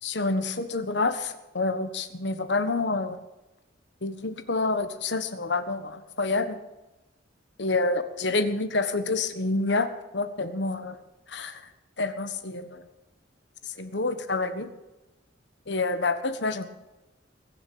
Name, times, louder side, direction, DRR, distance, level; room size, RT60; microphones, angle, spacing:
voice 1, 0.0-3.2 4.0-6.6 7.6-9.9 10.1-11.0 11.3-11.6 12.0-12.9 13.6-14.7 15.7-16.6, left 3 dB, 65° left, 10 dB, 1.4 m, -28 dB
21.5 x 7.3 x 8.5 m, 1.0 s
head